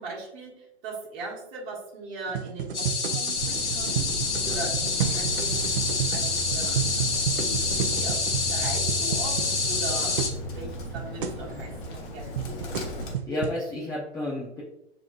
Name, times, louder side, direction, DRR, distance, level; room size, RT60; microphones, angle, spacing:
voice 1, 0.0-4.1 4.4-5.6 5.9-7.0 7.3-8.2 8.5-12.8, right 3 dB, 30° right, -4 dB, 1.7 m, -39 dB
sound 1, 2.3-10.4 10.6-10.7 10.9-11.4 12.1-13.6, right 8 dB, 50° right, 0.5 m, -32 dB
sound 2, 2.7-10.3, left 4 dB, 90° left, 0.8 m, -27 dB
Bird, 3.3-13.1, equal, 50° left, 1.1 m, -36 dB
voice 2, 13.3-14.6, left 1 dB, 10° left, -6 dB, 0.6 m, -31 dB
6.8 x 3.1 x 2.4 m, 0.85 s
figure-of-eight pair, 115°, 34 cm